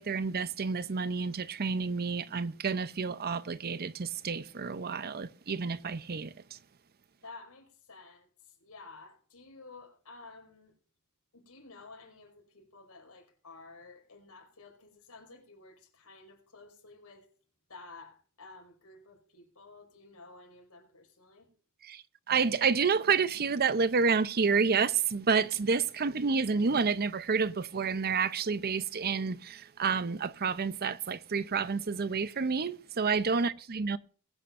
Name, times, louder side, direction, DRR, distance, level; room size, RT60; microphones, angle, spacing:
voice 1, 0.0-6.6 21.8-34.0, right 5 dB, 45° right, 0.6 m, -29 dB
voice 2, 7.2-10.7 11.3-17.3 17.7-21.5 33.3-33.5, left 3 dB, 85° left, 4.9 m, -52 dB
21.0 x 8.7 x 2.6 m
head